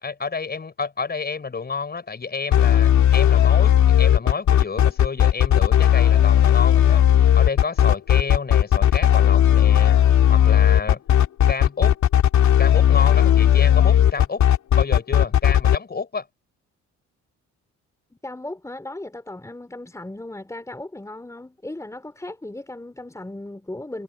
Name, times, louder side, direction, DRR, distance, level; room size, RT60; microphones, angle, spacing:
voice 1, 0.0-10.0 10.3-11.0 11.5-12.0 12.6-14.4 14.8-16.3, left 4 dB, 30° left, 5.1 m, -30 dB
sound 1, 2.5-15.8, left 10 dB, 70° left, 2.5 m, -16 dB
voice 2, 18.2-24.0, left 1 dB, 10° left, 3.7 m, -36 dB
cardioid pair, 90°, 30 cm